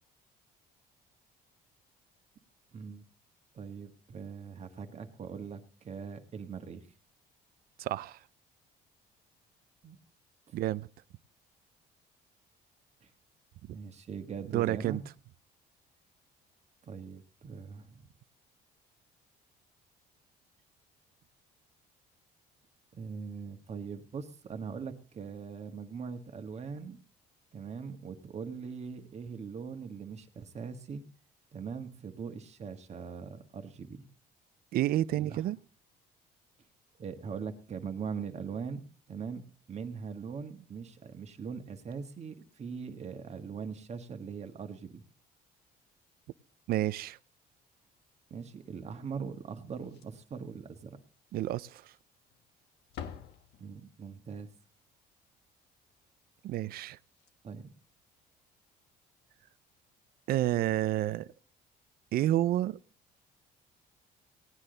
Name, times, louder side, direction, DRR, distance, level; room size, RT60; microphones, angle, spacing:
voice 1, 2.7-3.0 3.5-6.9 9.8-10.0 13.0-13.1 13.7-15.0 16.8-18.1 22.9-27.0 27.5-31.0 31.5-34.0 35.2-35.4 37.0-38.8 39.1-39.4 39.7-45.0 48.3-51.0 53.6-54.5 57.4-57.7, right 6 dB, 40° right, 1.5 m, -41 dB
voice 2, 7.8-8.2 10.5-10.9 14.5-15.0 34.7-35.6 46.7-47.2 51.3-51.9 56.4-57.0 60.3-61.3 62.1-62.8, right 14 dB, 60° right, 0.5 m, -29 dB
Slam, 49.7-50.4 50.7-50.8 51.3-51.4 52.2-52.5 52.8-54.1 56.8-56.9 57.1-57.3 58.8-59.0, left 8 dB, 80° left, 1.3 m, -47 dB
17.5 x 9.9 x 3.9 m
cardioid pair, 110°, 17 cm